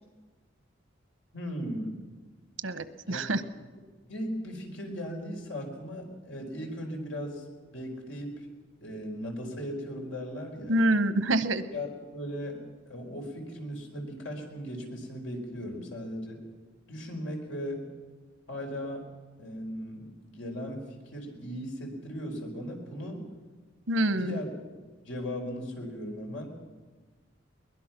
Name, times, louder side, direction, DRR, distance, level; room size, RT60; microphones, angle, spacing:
voice 1, 1.3-2.0 3.1-3.2 4.1-7.4 7.7-8.5 8.8-10.8 11.7-16.4 16.9-17.9 18.5-19.1 19.4-23.2 24.1-24.5 25.0-26.5, equal, 90° left, 2 dB, 4.7 m, -37 dB
voice 2, 2.6-3.4 10.7-11.6 23.9-24.4, right 1 dB, 90° right, 12 dB, 1.0 m, -26 dB
22.0 x 21.0 x 6.0 m, 1.4 s
head